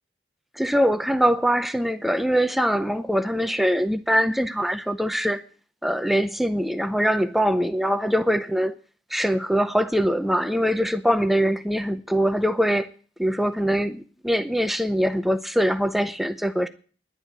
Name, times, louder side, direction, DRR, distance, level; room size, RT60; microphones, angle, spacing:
voice 1, 0.6-5.4 5.8-8.7 9.1-12.9 13.2-16.7, equal, ahead, 0.5 m, -23 dB
11.0 x 7.6 x 8.9 m
head